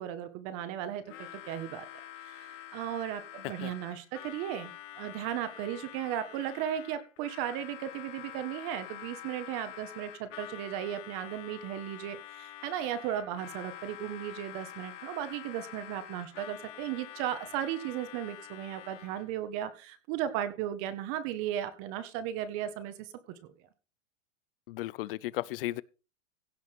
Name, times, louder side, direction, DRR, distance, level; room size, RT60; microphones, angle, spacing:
voice 1, 0.0-1.9 2.2-4.7 5.0-23.1 23.4-23.5, right 10 dB, 35° right, 1.6 m, -36 dB
Harmonica, 1.0-19.3, left 12 dB, 75° left, 2.3 m, -47 dB
voice 2, 24.7-25.8, left 17 dB, 45° left, 0.6 m, -35 dB
16.5 x 5.7 x 6.0 m
supercardioid pair, 160°, 38 cm